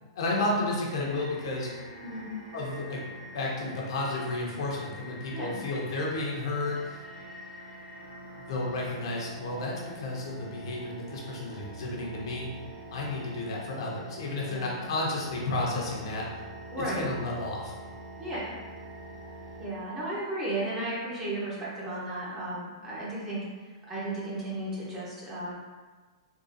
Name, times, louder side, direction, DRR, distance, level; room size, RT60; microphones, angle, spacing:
voice 1, 0.1-1.8 2.5-3.1 3.3-7.0 8.5-12.5 12.9-16.3 16.8-17.7, left 2 dB, 60° left, -3 dB, 0.8 m, -32 dB
sound 1, 0.9-19.7, right 1 dB, 80° right, 1.3 m, -45 dB
voice 2, 14.5-14.8 16.7-17.1 18.2-18.5 19.6-23.4 23.8-25.5, right 1 dB, 15° right, -7 dB, 0.8 m, -34 dB
3.7 x 2.4 x 2.6 m, 1.4 s
hypercardioid pair, 165°, 3 cm